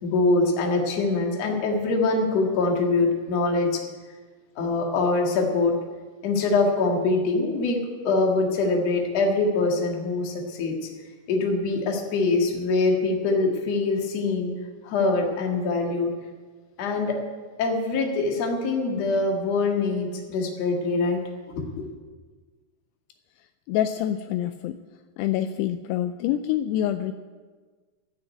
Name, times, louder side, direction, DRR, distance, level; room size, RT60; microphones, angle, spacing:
voice 1, 0.0-3.8 4.6-5.7 6.2-7.8 8.0-10.9 11.3-14.5 14.8-16.1 16.8-17.2 17.6-21.2 21.5-21.9, left 3 dB, 50° left, 1 dB, 2.3 m, -24 dB
voice 2, 23.7-24.8 25.2-27.1, left 11 dB, 85° left, 9 dB, 2.5 m, -26 dB
14.5 x 6.5 x 9.5 m, 1.4 s
omnidirectional pair, 4.9 m